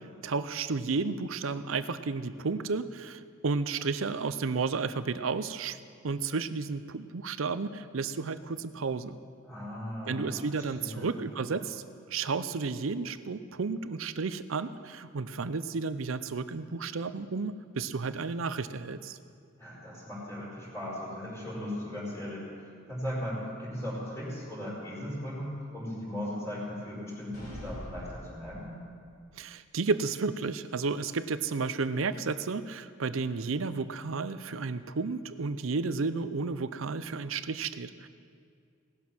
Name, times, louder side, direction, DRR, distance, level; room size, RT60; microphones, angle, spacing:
voice 1, 0.2-9.2 10.1-11.8 12.1-19.2 29.4-38.1, right 4 dB, 85° right, 13 dB, 0.6 m, -32 dB
voice 2, 9.4-11.1 11.5-11.6 19.6-22.5 22.9-28.8, left 1 dB, 15° left, -9 dB, 5.0 m, -37 dB
sound 1, 27.3-29.0, equal, 50° left, 5.1 m, -43 dB
18.0 x 11.5 x 6.1 m, 2.3 s
head